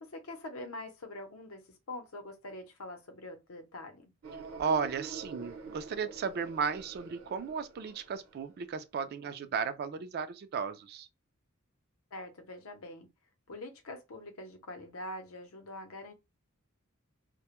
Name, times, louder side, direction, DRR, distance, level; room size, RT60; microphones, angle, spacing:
voice 1, 0.0-4.1 12.1-13.1 13.5-16.1, left 1 dB, 80° left, 0.7 m, -44 dB
sound 1, 4.2-8.6, right 4 dB, 70° right, 0.7 m, -47 dB
voice 2, 4.6-11.1, right 6 dB, 50° right, 0.3 m, -34 dB
2.1 x 2.0 x 2.9 m
head